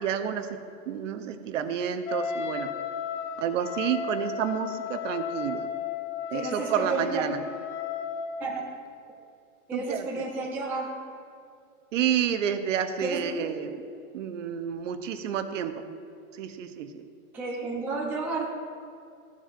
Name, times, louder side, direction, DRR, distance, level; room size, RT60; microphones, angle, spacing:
voice 1, 0.0-0.6 0.9-2.7 3.4-5.6 6.3-7.4 9.7-10.2 11.9-13.8 14.1-15.9 16.3-17.0, right 8 dB, 55° right, 9 dB, 0.8 m, -30 dB
Wind instrument woodwind instrument, 2.1-8.7, left 6 dB, 55° left, 0.8 m, -34 dB
voice 2, 6.3-7.2 8.4-8.6 9.7-11.0 13.0-13.6 17.3-18.5, right 3 dB, 5° right, -3 dB, 0.5 m, -32 dB
14.5 x 7.3 x 2.5 m, 2.4 s
hypercardioid pair, 145°, 44 cm